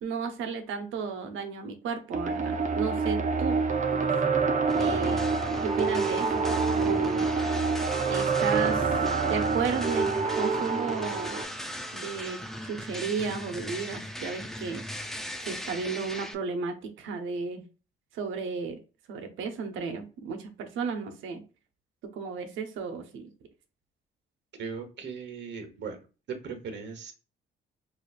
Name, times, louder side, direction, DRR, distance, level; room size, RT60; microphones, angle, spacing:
voice 1, 0.0-3.6 3.9-4.0 4.8-5.3 5.6-7.3 8.1-9.0 9.2-10.1 10.4-11.4 11.9-12.4 12.6-14.8 15.4-17.6 18.1-18.8 19.1-21.4 22.1-23.3, right 5 dB, 80° right, 6 dB, 0.7 m, -33 dB
sound 1, 2.1-11.5, right 4 dB, 40° right, 0.6 m, -27 dB
sound 2, 4.7-16.3, equal, ahead, 0.5 m, -38 dB
voice 2, 24.6-26.0 26.3-27.1, right 5 dB, 60° right, 6 dB, 1.1 m, -38 dB
4.9 x 2.4 x 2.4 m, 0.33 s
cardioid pair, 90°, 20 cm